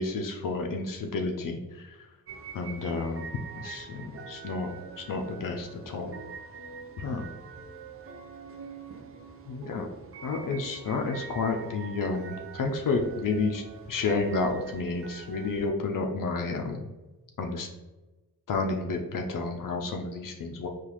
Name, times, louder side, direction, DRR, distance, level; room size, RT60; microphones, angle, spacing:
voice 1, 0.0-2.0 2.5-3.3 3.6-4.7 5.0-6.1 7.0-7.3 9.5-9.9 10.2-16.9 17.4-17.7 18.5-20.7, left 3 dB, 55° left, 3 dB, 0.5 m, -31 dB
sound 1, 2.3-15.7, right 5 dB, 35° right, 0.5 m, -44 dB
3.9 x 2.4 x 3.0 m, 1.1 s
cardioid pair, 60°, 39 cm